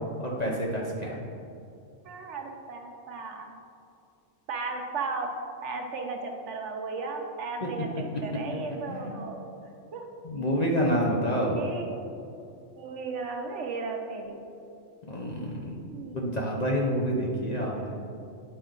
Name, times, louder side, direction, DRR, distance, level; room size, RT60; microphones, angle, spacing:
voice 1, 0.2-1.3 7.6-8.0 8.9-9.1 10.2-11.6 15.1-15.7 16.1-17.9, equal, 40° left, -3 dB, 0.7 m, -28 dB
voice 2, 2.0-3.6 4.5-5.4 5.6-9.5 9.9-10.1 11.5-12.0 12.8-14.5 15.8-16.2, right 4 dB, 65° right, 3 dB, 1.0 m, -35 dB
8.8 x 4.3 x 3.8 m, 2.5 s
omnidirectional pair, 1.3 m